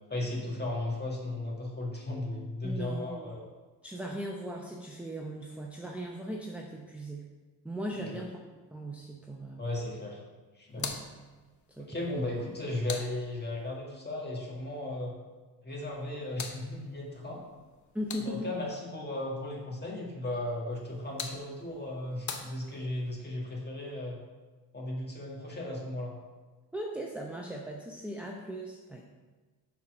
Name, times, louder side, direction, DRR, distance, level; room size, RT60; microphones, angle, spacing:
voice 1, 0.1-3.4 7.9-8.2 9.6-10.2 10.5-11.0 11.8-15.2 15.6-17.4 18.2-24.2 24.7-26.1, left 1 dB, 25° left, -2 dB, 1.9 m, -36 dB
voice 2, 2.6-3.3 3.8-7.3 7.6-8.3 8.7-9.6 10.8-11.1 11.8-11.9 17.9-18.5 26.7-29.1, right 1 dB, 5° right, -1 dB, 0.7 m, -38 dB
sound 1, 10.7-13.8 15.8-18.7 20.7-23.1, left 5 dB, 45° left, 0.8 m, -44 dB
5.8 x 4.3 x 6.2 m, 1.3 s
cardioid pair, 80°, 40 cm